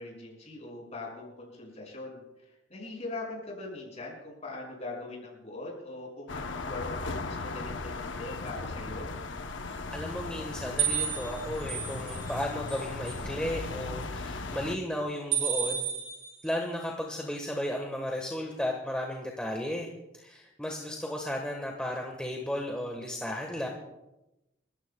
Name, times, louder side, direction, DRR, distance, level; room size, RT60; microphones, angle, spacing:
voice 1, 0.0-9.1, left 2 dB, 35° left, -2 dB, 6.2 m, -41 dB
sound 1, 6.3-14.8, left 3 dB, 70° left, 0.9 m, -37 dB
voice 2, 9.9-15.9 16.4-19.9 20.1-23.7, left 1 dB, 5° left, 0 dB, 1.4 m, -34 dB
sound 2, 10.8-12.4 12.7-13.2 15.3-16.5, right 8 dB, 35° right, 2.9 m, -31 dB
30.0 x 14.5 x 2.3 m, 0.96 s
head